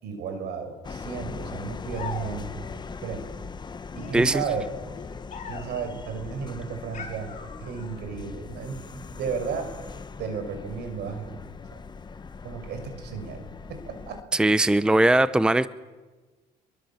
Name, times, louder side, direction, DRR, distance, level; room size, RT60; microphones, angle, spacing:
voice 1, 0.0-3.3 3.9-4.7 5.4-7.3 7.6-9.7 10.2-11.4 11.7-11.8 12.4-13.4 13.7-14.2, right 6 dB, 75° right, 7 dB, 6.0 m, -34 dB
sound 1, 0.8-14.2, left 4 dB, 25° left, 1.1 m, -40 dB
sound 2, 1.9-2.7 3.9-5.9 6.9-8.0, left 6 dB, 45° left, 6.6 m, -41 dB
voice 2, 4.1-4.4 14.3-15.7, right 1 dB, 5° right, 15 dB, 0.7 m, -20 dB
24.5 x 23.5 x 7.3 m, 1.3 s
cardioid pair, 110°, 17 cm